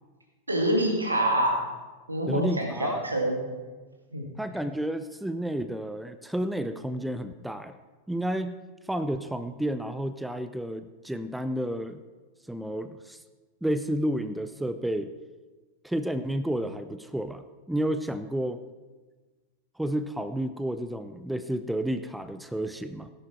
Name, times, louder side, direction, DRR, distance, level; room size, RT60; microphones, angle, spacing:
voice 1, 0.5-1.6 2.1-3.5 4.1-4.3, right 1 dB, 80° right, 2 dB, 2.2 m, -26 dB
voice 2, 2.3-3.0 4.4-7.8 8.1-8.6 8.9-12.0 12.5-13.2 13.6-15.1 15.8-18.6 19.8-23.1, right 1 dB, 5° right, 11 dB, 0.5 m, -31 dB
17.5 x 10.5 x 4.3 m, 1.3 s
figure-of-eight pair, 90°, 0 cm